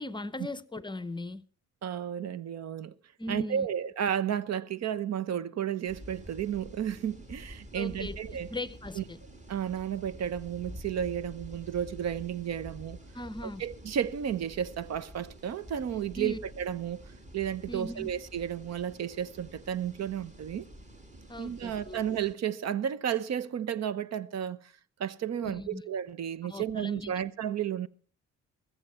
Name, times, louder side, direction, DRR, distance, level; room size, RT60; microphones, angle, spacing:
voice 1, 0.0-1.4 3.2-3.7 7.7-8.2 8.5-9.2 13.1-13.6 16.2-16.4 17.7-18.1 21.3-22.0 25.4-25.8 26.4-27.1, left 1 dB, 15° left, 0.7 m, -38 dB
voice 2, 1.8-2.9 3.3-8.5 8.9-9.0 9.5-13.0 13.6-17.0 17.3-20.7 21.4-24.6 25.0-27.9, right 9 dB, 60° right, 0.8 m, -32 dB
sound 1, 5.9-22.3, equal, 25° right, 2.7 m, -48 dB
21.5 x 7.5 x 5.6 m
cardioid pair, 90°, 30 cm